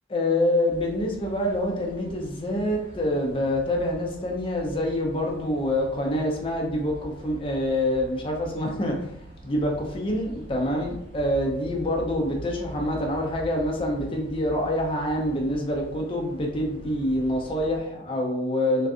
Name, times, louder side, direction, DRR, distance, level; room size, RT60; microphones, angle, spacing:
voice 1, 0.1-18.9, left 1 dB, 30° left, 0 dB, 0.4 m, -26 dB
sound 1, 0.7-17.8, equal, 30° right, 0.8 m, -44 dB
2.4 x 2.3 x 2.5 m, 0.78 s
head